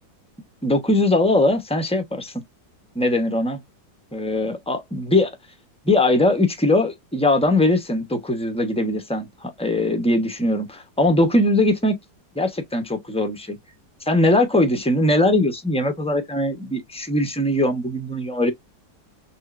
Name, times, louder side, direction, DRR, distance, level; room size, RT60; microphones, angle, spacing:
voice 1, 0.6-2.3 2.9-3.6 4.1-5.4 5.8-11.9 12.3-13.6 14.1-18.5, left 1 dB, 5° left, 0.6 m, -21 dB
6.4 x 2.5 x 2.5 m
omnidirectional pair, 1.9 m